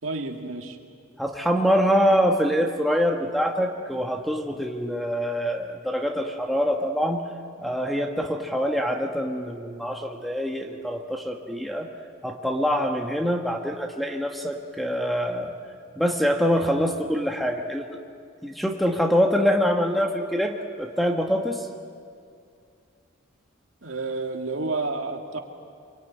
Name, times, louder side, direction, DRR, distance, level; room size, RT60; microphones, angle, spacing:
voice 1, 0.0-0.8 23.8-25.4, right 3 dB, 80° right, 3 dB, 2.4 m, -30 dB
voice 2, 1.2-7.2 7.6-11.9 12.2-15.5 16.0-18.0 18.4-21.7, equal, ahead, 3 dB, 1.4 m, -25 dB
26.5 x 23.5 x 9.5 m, 2.4 s
head